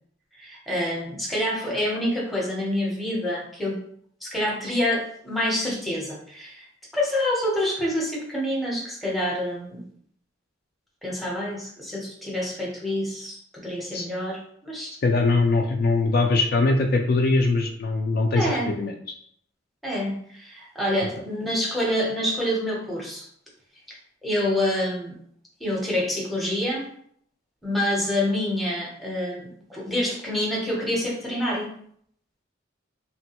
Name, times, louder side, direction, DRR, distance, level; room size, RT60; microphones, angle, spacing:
voice 1, 0.4-3.8 4.2-6.7 6.9-9.9 11.0-15.0 18.3-18.7 19.8-23.3 23.9-24.0 24.2-25.2 25.6-26.9 27.6-31.7, left 1 dB, ahead, -4 dB, 0.6 m, -27 dB
voice 2, 15.0-18.9, left 3 dB, 50° left, 3 dB, 0.3 m, -22 dB
3.2 x 2.2 x 2.8 m, 0.64 s
head